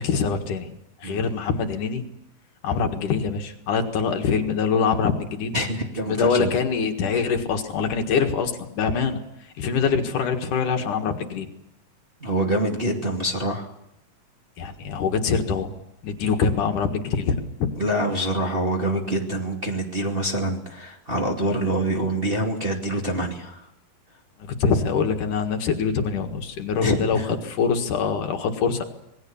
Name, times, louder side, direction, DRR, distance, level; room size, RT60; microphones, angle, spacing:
voice 1, 0.0-2.0 2.6-5.6 6.1-9.2 9.6-11.5 14.6-15.7 16.0-17.7 24.6-28.8, left 5 dB, 65° left, 4 dB, 3.2 m, -24 dB
voice 2, 5.5-6.5 12.2-13.7 17.8-23.6 26.8-27.4, right 1 dB, 20° right, 0 dB, 2.2 m, -25 dB
26.5 x 20.0 x 7.1 m, 0.84 s
omnidirectional pair, 4.1 m